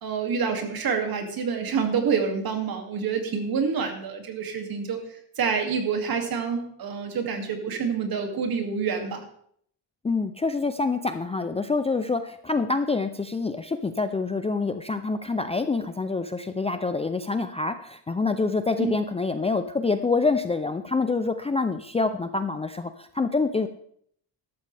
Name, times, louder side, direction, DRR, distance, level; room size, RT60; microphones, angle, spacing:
voice 1, 0.0-5.0 5.4-9.2 18.8-19.0, right 6 dB, 55° right, 4 dB, 2.5 m, -27 dB
voice 2, 10.0-23.7, left 3 dB, 15° left, 8 dB, 0.4 m, -26 dB
13.5 x 12.5 x 3.4 m, 0.65 s
cardioid pair, 150°, 44 cm